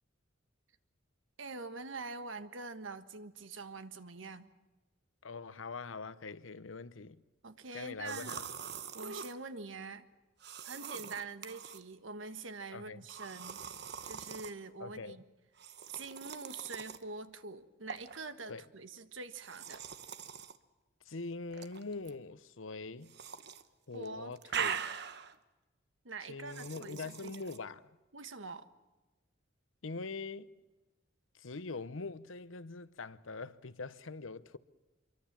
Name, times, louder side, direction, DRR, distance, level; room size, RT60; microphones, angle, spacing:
voice 1, 1.4-4.5 7.4-8.4 8.9-10.1 10.6-13.6 14.0-15.2 15.9-19.8 23.9-24.8 26.0-27.4 28.1-28.7, right 3 dB, 80° right, 1.4 m, -45 dB
voice 2, 5.2-7.2 7.7-8.4 12.7-13.1 14.8-15.2 18.5-18.6 21.1-23.2 23.9-24.7 26.3-28.0 29.8-30.5 31.4-34.6, left 3 dB, 90° left, 0.9 m, -43 dB
sound 1, 8.0-9.4 10.4-11.8 13.1-14.5 15.6-17.0 17.9-18.2 19.4-20.6 21.5-22.1 23.1-23.6 23.9-25.4 26.5-27.6, right 7 dB, 60° right, 1.1 m, -42 dB
26.0 x 23.5 x 7.5 m
head